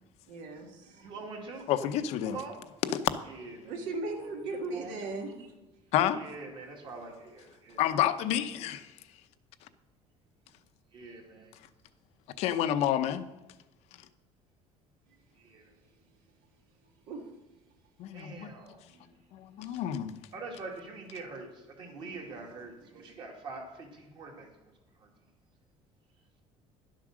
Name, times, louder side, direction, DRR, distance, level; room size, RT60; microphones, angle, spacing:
voice 1, 0.3-1.1 3.7-5.5 17.1-17.3 18.9-19.2 19.6-19.8 21.8-22.4 22.8-23.1, right 3 dB, 75° right, 1.9 m, -39 dB
voice 2, 1.0-1.7 2.2-2.6 3.3-3.8 4.2-5.1 6.2-7.8 10.9-11.5 15.4-15.6 18.1-18.8 20.3-24.5 25.0-25.1, right 3 dB, 40° right, 2.2 m, -44 dB
voice 3, 1.7-2.4 2.8-3.0 5.9-6.2 7.8-8.9 12.4-13.3 18.0-18.5 19.3-20.1, left 11 dB, 60° left, 0.7 m, -29 dB
11.5 x 7.6 x 6.1 m
cardioid pair, 175°, 13 cm